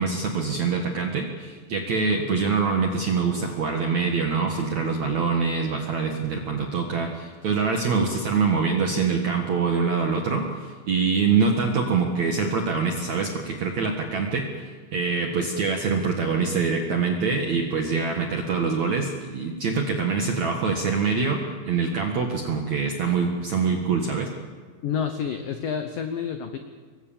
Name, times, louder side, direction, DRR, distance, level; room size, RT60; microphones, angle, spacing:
voice 1, 0.0-21.4 21.6-24.3, right 5 dB, 60° right, 2 dB, 1.9 m, -24 dB
voice 2, 24.8-26.6, left 7 dB, 85° left, 7 dB, 1.9 m, -29 dB
26.0 x 22.5 x 7.4 m, 1.5 s
omnidirectional pair, 5.7 m